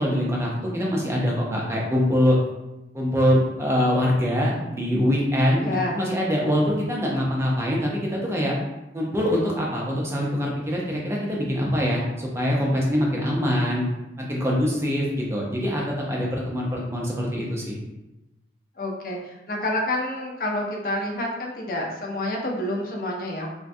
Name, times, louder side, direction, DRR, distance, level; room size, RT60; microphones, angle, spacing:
voice 1, 0.0-2.4 2.9-8.5 8.9-13.9 14.3-17.8, equal, 15° right, -3 dB, 0.5 m, -24 dB
voice 2, 5.6-6.0 18.8-23.5, left 1 dB, 50° left, 0 dB, 0.5 m, -28 dB
3.5 x 2.1 x 2.6 m, 0.98 s
head